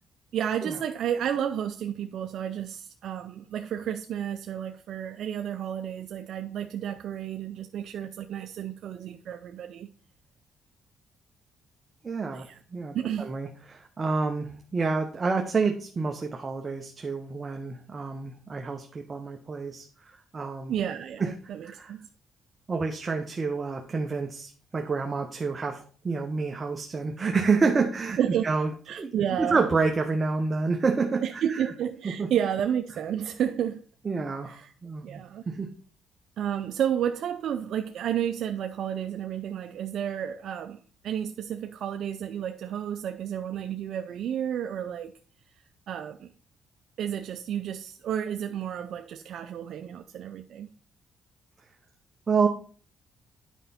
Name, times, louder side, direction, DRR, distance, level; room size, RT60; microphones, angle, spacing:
voice 1, 0.3-9.9 12.3-12.6 12.9-13.3 20.7-22.0 28.2-28.5 28.9-29.6 31.2-33.8 34.4-34.7 35.0-35.4 36.4-45.1 45.9-46.3 47.0-50.7, right 9 dB, 70° right, 0.4 m, -31 dB
voice 2, 12.0-12.5 12.7-20.7 21.2-21.3 21.6-21.9 22.7-25.8 26.0-28.2 28.4-28.7 29.0-29.1 29.4-31.6 32.2-32.3 34.0-35.7 52.3-52.5, right 4 dB, 35° right, 0.8 m, -28 dB
9.1 x 5.2 x 4.2 m
cardioid pair, 90°, 0 cm